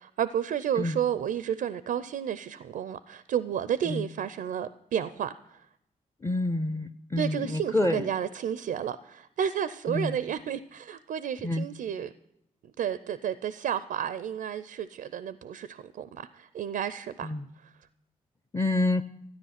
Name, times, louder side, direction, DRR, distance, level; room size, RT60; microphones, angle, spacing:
voice 1, 0.0-5.3 7.2-12.1 12.8-17.3 17.6-17.7, right 9 dB, 70° right, 0.4 m, -31 dB
voice 2, 6.2-8.1 9.9-10.2 11.4-11.7 17.2-17.5 18.5-19.0, left 2 dB, 15° left, 0.5 m, -28 dB
13.0 x 9.7 x 5.8 m
supercardioid pair, 55°, 15 cm